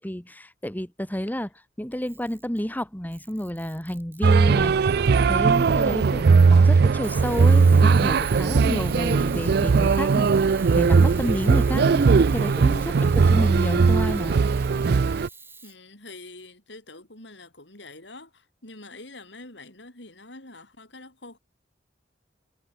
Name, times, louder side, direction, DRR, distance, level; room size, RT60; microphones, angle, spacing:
voice 1, 0.0-1.5 1.8-14.4, equal, 10° left, 1.9 m, -30 dB
Camera, 1.9-2.7 3.1-4.6 7.0-15.8, right 4 dB, 15° right, 2.5 m, -45 dB
sound 1, 4.2-15.3, right 5 dB, 60° right, 0.4 m, -19 dB
voice 2, 15.6-21.4, left 2 dB, 75° left, 7.5 m, -45 dB
head